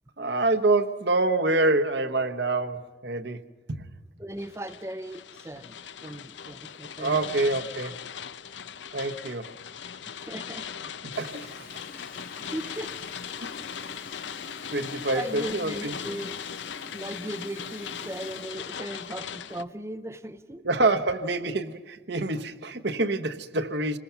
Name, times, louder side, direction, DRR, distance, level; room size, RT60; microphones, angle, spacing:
voice 1, 0.2-3.4 3.7-3.9 7.0-7.9 8.9-9.5 11.2-11.6 13.4-13.5 14.7-15.9 20.6-24.0, right 2 dB, 70° right, 1.1 m, -26 dB
voice 2, 4.2-5.8 6.0-7.2 10.1-10.7 12.5-12.9 13.7-13.9 15.0-16.3 16.9-20.6, right 1 dB, 15° right, 0.6 m, -37 dB
sound 1, 4.4-19.6, left 7 dB, 80° left, 0.7 m, -39 dB
Water tap faucet, 11.1-19.6, left 4 dB, 50° left, 1.8 m, -47 dB
27.5 x 20.5 x 5.8 m
head